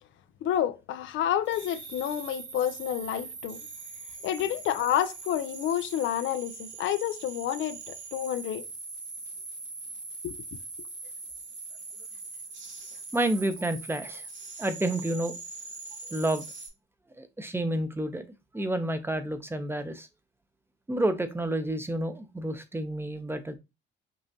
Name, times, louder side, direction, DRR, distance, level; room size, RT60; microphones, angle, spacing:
voice 1, 0.4-3.6 4.2-8.6 10.2-10.4, left 10 dB, 75° left, 0.4 m, -29 dB
sound 1, 1.5-16.7, right 4 dB, 80° right, 2.2 m, -42 dB
voice 2, 13.1-14.3 14.6-15.4 16.1-16.4 17.2-18.3 18.5-20.1 20.9-23.6, right 1 dB, 10° right, 0.6 m, -29 dB
5.3 x 2.4 x 2.7 m
cardioid pair, 90°, 20 cm